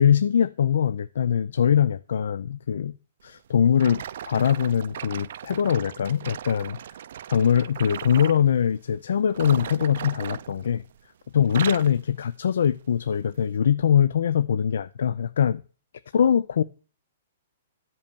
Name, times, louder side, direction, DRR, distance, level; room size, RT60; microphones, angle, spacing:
voice 1, 0.0-2.9 3.2-6.8 7.3-10.8 11.3-15.6 16.1-16.6, left 8 dB, 80° left, 0.5 m, -22 dB
sound 1, 3.8-8.4 9.3-11.1 11.4-12.0 12.6-12.8 13.5-13.6, right 10 dB, 60° right, 0.5 m, -37 dB
13.0 x 5.6 x 6.9 m
hypercardioid pair, 160°, 0 cm